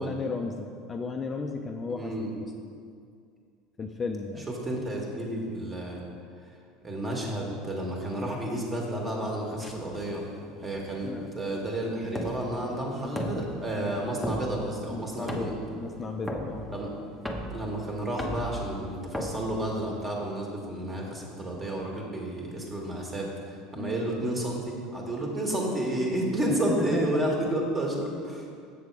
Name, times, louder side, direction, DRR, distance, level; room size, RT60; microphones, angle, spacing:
voice 1, 0.0-2.1 3.8-4.5 11.0-11.3 14.9-15.5 15.8-16.6 23.8-24.0 26.7-27.1, left 4 dB, 25° left, 3 dB, 0.5 m, -34 dB
voice 2, 1.9-2.3 4.5-6.0 6.8-10.3 10.6-15.5 16.7-16.9 17.5-23.3 23.7-28.5, right 1 dB, 25° right, -1 dB, 1.8 m, -31 dB
sound 1, 9.6-20.3, equal, ahead, 0.9 m, -38 dB
7.0 x 6.6 x 4.8 m, 2.2 s
supercardioid pair, 100°, 0 cm